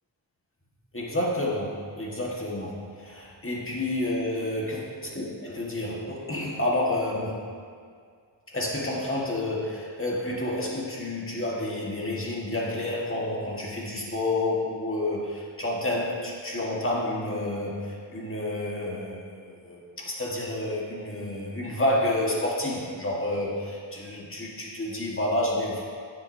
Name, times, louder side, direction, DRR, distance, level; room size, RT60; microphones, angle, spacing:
voice 1, 0.9-4.8 5.0-7.5 8.5-25.8, left 1 dB, 25° left, -4 dB, 1.6 m, -29 dB
9.4 x 7.6 x 2.7 m, 2.1 s
wide cardioid pair, 55°, 46 cm